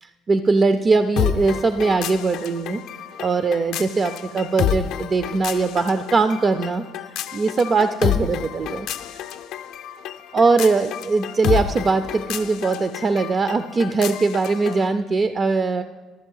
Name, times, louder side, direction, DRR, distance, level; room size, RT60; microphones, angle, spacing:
voice 1, 0.0-2.8 3.2-9.2 10.3-15.8, right 4 dB, 30° right, 10 dB, 0.3 m, -21 dB
sound 1, 1.2-14.9, left 10 dB, 70° left, 0.4 m, -29 dB
12.0 x 7.4 x 5.4 m, 1.4 s
cardioid pair, 140°, 0 cm